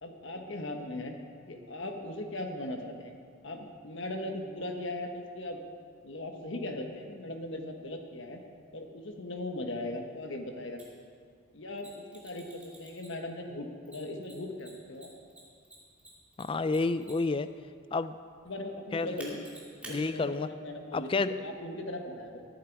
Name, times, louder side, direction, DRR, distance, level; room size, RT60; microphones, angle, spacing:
voice 1, 0.0-1.1 1.5-3.1 3.4-5.6 6.0-8.4 8.7-10.8 11.5-15.1 18.4-19.4 19.8-22.5, left 1 dB, 60° left, 4 dB, 1.3 m, -38 dB
Mechanisms, 10.8-10.9 11.8-13.3 13.9-17.4 19.2-20.0, right 2 dB, 5° right, 2.6 m, -49 dB
voice 2, 16.4-17.5 17.9-18.2 18.9-19.1 19.9-20.5 20.9-21.3, left 3 dB, 25° left, 13 dB, 0.3 m, -29 dB
18.5 x 9.4 x 4.7 m, 2.2 s
head